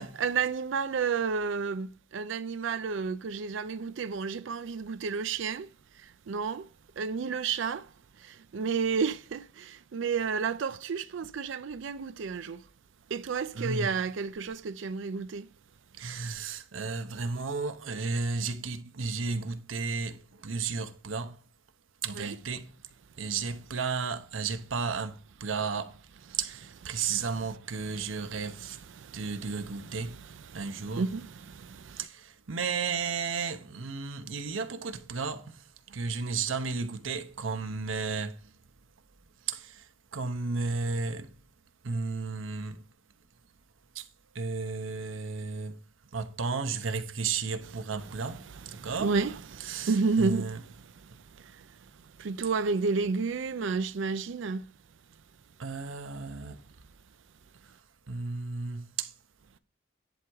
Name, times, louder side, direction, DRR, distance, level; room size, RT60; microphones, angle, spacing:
voice 1, 0.0-5.7 6.3-6.7 7.0-7.9 8.2-12.6 13.1-15.5 22.2-22.3 29.0-29.2 30.7-32.0 48.7-50.5 51.4-51.7 52.2-54.6, right 5 dB, 70° right, 0.4 m, -31 dB
voice 2, 13.5-14.0 16.0-21.3 22.0-22.7 23.2-25.9 26.4-28.8 29.1-30.2 30.5-31.1 32.0-32.1 32.5-35.5 35.9-38.3 39.5-39.6 40.1-41.3 41.8-42.8 44.4-45.7 46.1-48.4 48.8-49.1 49.6-50.6 55.6-56.6 58.1-59.1, right 4 dB, 85° right, 0.9 m, -33 dB
10.5 x 3.5 x 4.7 m
head